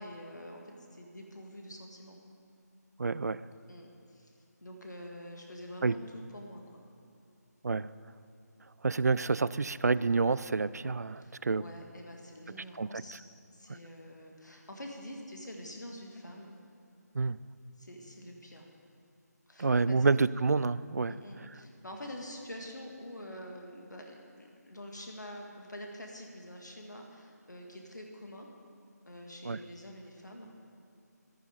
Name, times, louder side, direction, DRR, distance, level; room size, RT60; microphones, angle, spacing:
voice 1, 0.0-2.2 3.7-4.3 4.6-6.8 11.2-13.2 13.5-16.5 17.8-18.7 19.5-20.0 21.1-28.5 29.1-30.5, equal, 80° left, 1 dB, 2.0 m, -46 dB
voice 2, 3.0-3.4 5.8-6.0 7.6-7.9 8.8-11.6 12.8-13.0 17.1-17.4 19.6-21.2 29.4-29.6, right 4 dB, 65° right, 18 dB, 0.4 m, -28 dB
15.5 x 11.0 x 5.3 m, 2.7 s
figure-of-eight pair, 155°, 9 cm